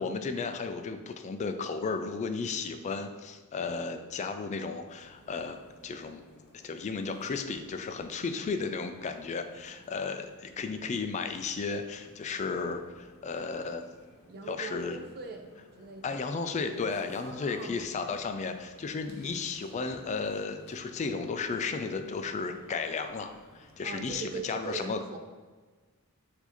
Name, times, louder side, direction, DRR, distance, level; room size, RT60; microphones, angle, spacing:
voice 1, 0.0-5.6 5.8-6.2 6.6-13.9 14.5-15.0 16.0-25.0, left 4 dB, 30° left, 7 dB, 0.3 m, -34 dB
sound 1, 4.8-24.4, equal, 50° left, 0.8 m, -58 dB
voice 2, 14.3-15.5 15.8-16.3 17.2-17.9 23.8-25.2, right 4 dB, 45° right, 4 dB, 0.4 m, -41 dB
4.6 x 2.7 x 4.2 m, 1.4 s
head